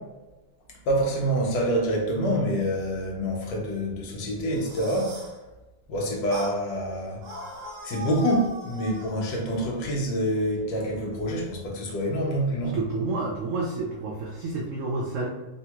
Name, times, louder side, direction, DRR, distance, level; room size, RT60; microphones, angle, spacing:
voice 1, 0.8-5.2 5.9-7.2 7.8-12.8, equal, 80° left, -1 dB, 1.3 m, -26 dB
sound 1, 4.4-5.4 6.3-6.6 7.2-9.1, right 1 dB, 55° right, 1.0 m, -39 dB
voice 2, 12.7-15.3, right 3 dB, 80° right, -2 dB, 0.6 m, -29 dB
3.4 x 2.2 x 2.8 m, 1.1 s
omnidirectional pair, 1.9 m